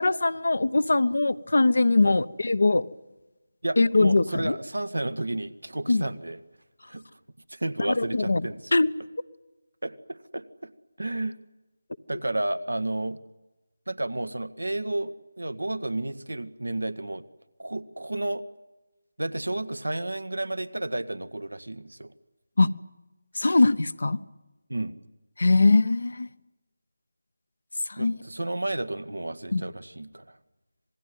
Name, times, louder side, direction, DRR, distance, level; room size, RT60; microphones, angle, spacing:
voice 1, 0.0-2.8 3.8-4.5 5.9-6.0 7.9-8.4 8.7-8.9 22.6-22.7 23.3-24.2 25.4-26.3 27.9-28.2 29.5-29.6, left 3 dB, 65° left, 16 dB, 1.1 m, -21 dB
voice 2, 3.6-6.4 6.9-7.0 7.5-8.7 9.8-10.7 11.0-11.4 12.1-13.2 13.9-17.2 17.6-18.4 19.2-22.1 24.7-25.0 28.0-30.4, right 2 dB, 85° right, 13 dB, 1.6 m, -31 dB
27.0 x 20.0 x 9.4 m, 1.1 s
figure-of-eight pair, 160°, 0 cm